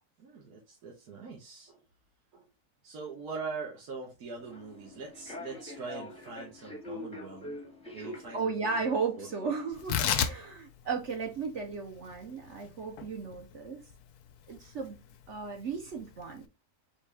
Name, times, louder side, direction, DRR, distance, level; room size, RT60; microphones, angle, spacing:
voice 1, 0.2-1.8 2.3-2.4 2.8-7.6 7.9-9.5, right 4 dB, 75° right, 1.6 m, -42 dB
Human voice / Subway metro underground, 4.4-9.8, left 1 dB, 5° left, 0.8 m, -45 dB
voice 2, 8.3-13.8 14.5-15.0 15.3-16.4, right 5 dB, 55° right, 1.0 m, -35 dB
Tearing, 9.7-16.5, left 8 dB, 85° left, 1.1 m, -36 dB
4.3 x 3.2 x 3.4 m
omnidirectional pair, 1.6 m